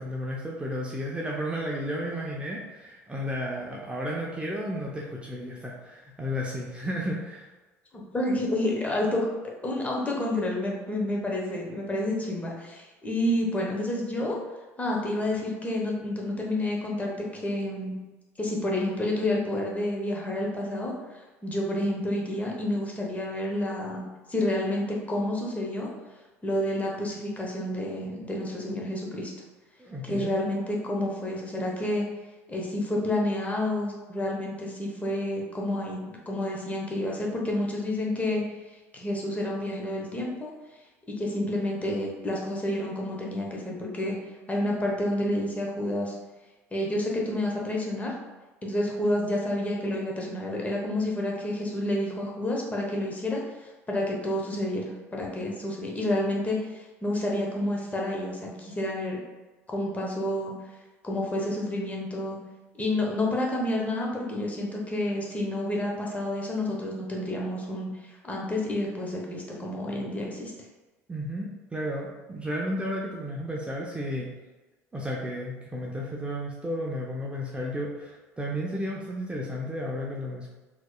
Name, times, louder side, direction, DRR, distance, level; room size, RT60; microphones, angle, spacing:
voice 1, 0.0-7.5 29.8-30.4 71.1-74.3 74.9-80.5, equal, 15° right, -3 dB, 0.6 m, -33 dB
voice 2, 7.9-9.3 9.6-14.4 14.8-17.9 18.4-20.9 21.4-25.9 26.4-29.3 30.0-32.1 32.5-38.4 38.9-40.5 41.1-44.2 44.5-46.1 46.7-48.1 48.6-53.4 53.9-59.2 59.7-60.5 61.0-62.4 62.8-70.5, left 1 dB, 20° left, -2 dB, 1.0 m, -29 dB
4.4 x 3.0 x 2.2 m, 1.2 s
hypercardioid pair, 65°, 8 cm